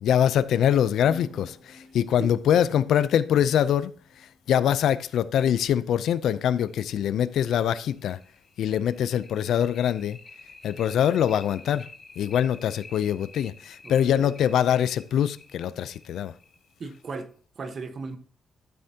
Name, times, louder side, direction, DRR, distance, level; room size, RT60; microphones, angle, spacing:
voice 1, 0.0-3.9 4.5-8.2 8.6-10.2 10.6-11.9 12.2-16.3, left 9 dB, 85° left, 0.5 m, -23 dB
sound 1, 1.0-4.2 5.7-5.8 6.2-6.3 6.7-6.8 7.2-17.2, left 2 dB, 25° left, 1.9 m, -48 dB
voice 2, 13.8-14.4 16.8-18.2, right 4 dB, 40° right, 1.2 m, -37 dB
12.5 x 7.8 x 2.8 m
wide cardioid pair, 150°, 0 cm